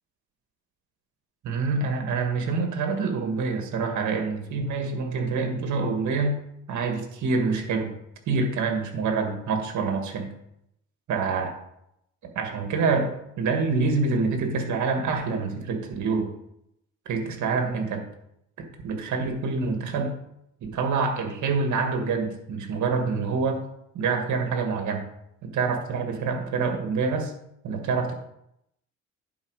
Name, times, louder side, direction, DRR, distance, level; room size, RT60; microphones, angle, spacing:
voice 1, 1.4-6.4 6.7-7.9 8.3-10.3 11.1-11.5 12.4-16.3 17.1-18.1 18.6-20.2 20.6-23.6 23.9-25.1 25.4-27.3 27.6-28.1, right 4 dB, 75° right, 4 dB, 1.9 m, -26 dB
10.5 x 4.5 x 4.8 m, 0.79 s
cardioid pair, 90°, 30 cm